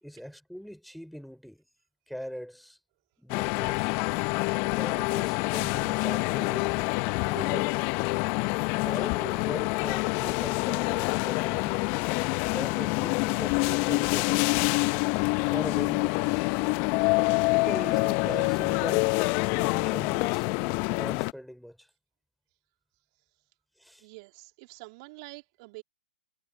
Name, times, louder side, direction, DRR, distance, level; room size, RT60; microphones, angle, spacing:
voice 1, 0.0-1.6 2.1-2.8 3.2-4.0 4.8-6.7 7.2-7.8 8.7-11.9 12.5-14.5 15.5-16.4 17.5-19.2 19.4-20.5 20.8-21.9 23.8-24.1, equal, ahead, 3.7 m, -41 dB
sound 1, 3.3-21.3, left 30 dB, 35° left, 0.8 m, -26 dB
voice 2, 24.0-25.8, right 27 dB, 40° right, 3.3 m, -46 dB
figure-of-eight pair, 120°, 5 cm